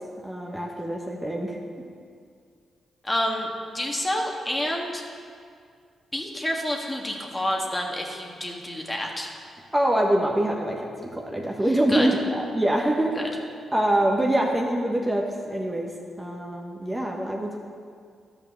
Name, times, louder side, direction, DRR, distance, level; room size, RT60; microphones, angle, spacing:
voice 1, 0.2-1.6 9.7-13.1 13.7-15.9 16.2-17.6, right 1 dB, 15° right, -1 dB, 1.3 m, -24 dB
voice 2, 3.0-3.5 3.7-5.0 6.1-9.3 11.9-12.1 13.1-13.3, left 1 dB, 15° left, 0 dB, 1.7 m, -28 dB
12.0 x 5.4 x 7.0 m, 2.2 s
supercardioid pair, 60°, 0 cm